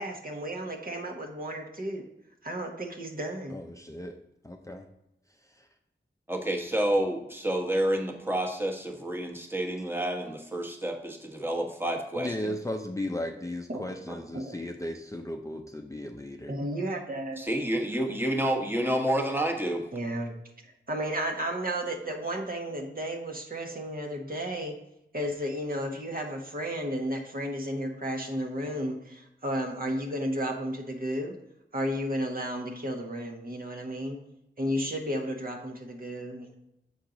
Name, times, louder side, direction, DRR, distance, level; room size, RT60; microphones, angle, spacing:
voice 1, 0.0-2.0 2.4-3.6 13.7-13.9 14.3-14.5 16.5-17.6 19.9-20.3 20.6-24.8 25.1-31.3 31.7-34.2 34.6-36.5, equal, 50° right, 2 dB, 1.0 m, -33 dB
voice 2, 3.5-4.2 4.4-4.9 5.4-5.7 12.1-16.5, left 1 dB, 15° left, 3 dB, 0.5 m, -36 dB
voice 3, 6.3-12.5 14.1-14.2 17.4-19.8, right 1 dB, 10° right, 1 dB, 1.1 m, -29 dB
7.1 x 4.5 x 3.8 m, 0.85 s
wide cardioid pair, 55°, 19 cm